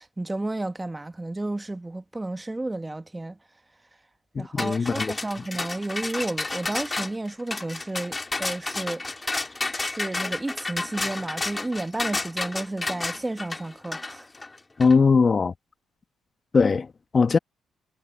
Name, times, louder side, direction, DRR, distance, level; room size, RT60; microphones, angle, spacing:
voice 1, 0.0-3.4 4.3-14.3, right 2 dB, 15° right, 1.5 m, -32 dB
voice 2, 4.3-5.1 14.8-15.5 16.5-16.9 17.1-17.4, left 5 dB, 40° left, 1.1 m, -20 dB
sound 1, 4.6-14.9, left 2 dB, 25° left, 3.6 m, -31 dB
supercardioid pair, 65°, 0 cm